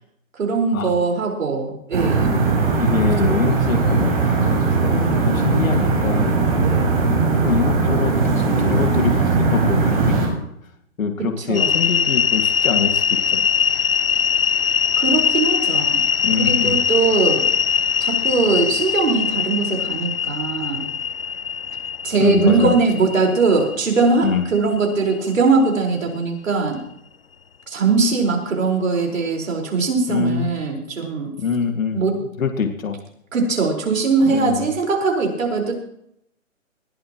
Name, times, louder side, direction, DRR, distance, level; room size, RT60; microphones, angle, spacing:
voice 1, 0.3-2.4 11.4-11.8 15.0-16.0 16.4-17.4 18.0-20.9 22.0-26.8 27.7-31.3 31.9-32.2 33.3-35.7, right 4 dB, 70° right, 1 dB, 4.9 m, -20 dB
sound 1, 1.9-10.3, right 4 dB, 45° right, 6.5 m, -19 dB
voice 2, 2.8-6.4 7.4-10.1 11.0-13.5 16.2-16.8 22.2-22.8 24.2-24.5 30.1-30.5 31.4-32.0 32.4-33.0 34.3-34.7, left 6 dB, 80° left, 5 dB, 2.3 m, -24 dB
sound 2, 11.5-25.7, left 7 dB, 45° left, 0.5 m, -21 dB
20.5 x 14.0 x 3.1 m, 0.75 s
hypercardioid pair, 175°, 40 cm